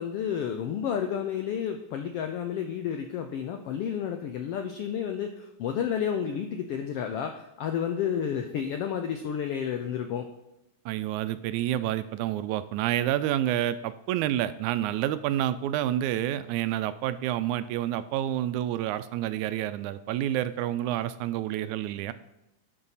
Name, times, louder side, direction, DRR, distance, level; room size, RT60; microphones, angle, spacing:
voice 1, 0.0-10.3, left 8 dB, 85° left, 5 dB, 1.3 m, -31 dB
voice 2, 10.9-22.1, right 12 dB, 85° right, 13 dB, 2.0 m, -29 dB
11.0 x 5.6 x 4.1 m, 0.92 s
omnidirectional pair, 3.4 m